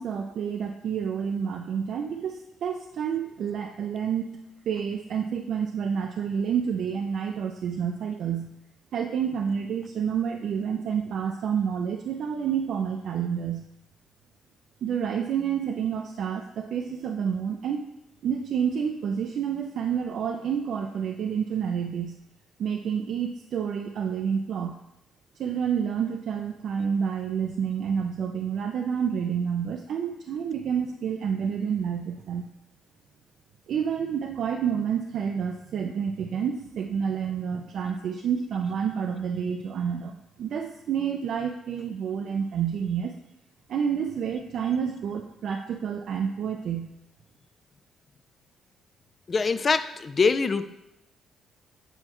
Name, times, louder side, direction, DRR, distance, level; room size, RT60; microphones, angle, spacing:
voice 1, 0.0-4.3 4.7-8.6 8.9-13.7 14.8-17.8 18.2-22.2 22.6-24.8 25.4-32.5 33.7-43.1 43.7-46.9, right 7 dB, 70° right, 3 dB, 0.4 m, -29 dB
voice 2, 49.3-50.7, left 4 dB, 40° left, 11 dB, 0.4 m, -23 dB
7.8 x 4.4 x 3.0 m, 0.85 s
cardioid pair, 75°, 0 cm